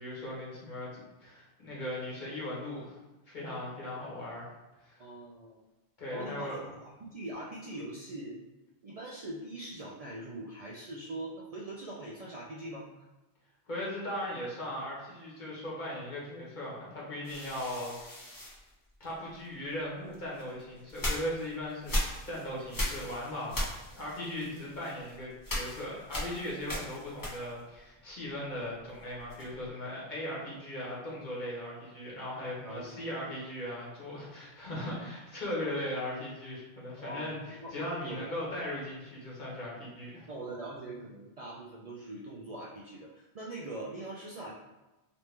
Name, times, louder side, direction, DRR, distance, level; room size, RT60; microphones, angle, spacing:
voice 1, 0.0-3.0 3.3-4.5 4.8-5.0 6.0-6.6 13.7-18.3 19.0-22.0 22.2-40.3, left 1 dB, 50° left, -6 dB, 1.3 m, -38 dB
voice 2, 5.0-5.6 6.1-6.5 6.8-8.4 8.8-13.1 32.6-33.1 37.0-38.3 40.3-44.5, right 2 dB, 50° right, -4 dB, 0.4 m, -42 dB
sound 1, 17.2-19.5 20.1-27.8 28.1-29.7, left 1 dB, 25° left, 0.6 m, -38 dB
3.0 x 3.0 x 3.2 m, 1.1 s
omnidirectional pair, 1.0 m